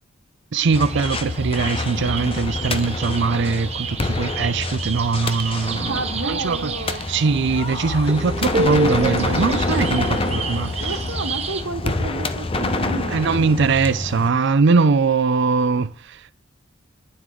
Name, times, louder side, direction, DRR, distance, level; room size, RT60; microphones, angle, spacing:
voice 1, 0.5-6.7 7.1-10.9 13.1-16.3, right 4 dB, 60° right, 0.5 m, -21 dB
sound 1, 0.6-11.6, right 3 dB, 35° right, 1.1 m, -30 dB
sound 2, 0.7-14.3, left 2 dB, 30° left, 0.7 m, -27 dB
voice 2, 5.8-7.0 10.8-13.1, right 2 dB, 80° right, 1.4 m, -31 dB
13.5 x 9.3 x 3.8 m
head